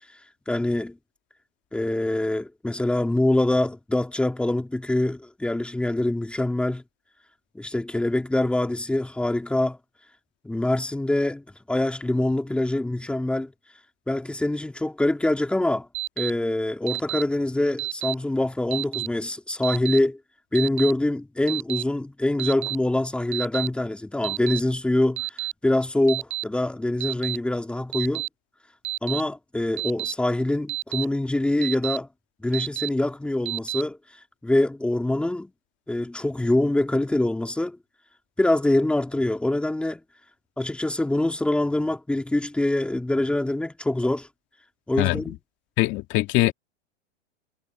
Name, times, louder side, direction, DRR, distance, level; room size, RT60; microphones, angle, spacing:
voice 1, 0.5-1.0 1.7-6.8 7.5-9.8 10.4-13.5 14.1-15.9 16.2-20.2 20.5-25.2 25.6-28.3 29.0-32.1 32.4-34.0 34.4-35.5 35.9-37.8 38.4-40.0 40.6-44.3 44.9-45.4, left 1 dB, 5° left, 2.1 m, -24 dB
Alarm, 15.9-16.3 16.9-17.2 17.8-18.1 18.7-19.1 19.6-20.0 20.5-20.9 21.5-21.8 22.4-22.8 23.3-23.7 24.2-24.6 25.2-25.5 26.1-26.4 27.0-27.4 27.9-28.3 28.8-29.2 29.8-30.1 30.7-31.0 31.6-32.0 32.5-32.9 33.5-33.8, right 16 dB, 65° right, 7.2 m, -29 dB
voice 2, 45.0-45.3 45.8-46.5, left 19 dB, 30° left, 2.6 m, -22 dB
hypercardioid pair, 150°, 36 cm